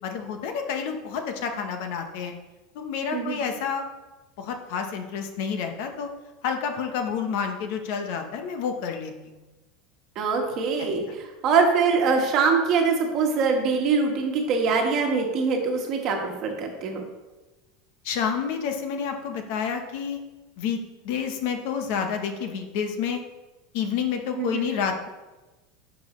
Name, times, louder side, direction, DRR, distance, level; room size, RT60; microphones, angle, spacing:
voice 1, 0.0-2.3 2.7-3.8 4.4-6.1 6.4-9.3 10.5-10.9 18.0-20.2 20.6-20.8 21.0-23.2 23.7-25.1, left 7 dB, 55° left, 5 dB, 1.0 m, -29 dB
voice 2, 10.1-17.0 24.4-24.7, right 5 dB, 35° right, 2 dB, 1.4 m, -23 dB
10.5 x 6.2 x 3.2 m, 1.1 s
supercardioid pair, 170°, 0 cm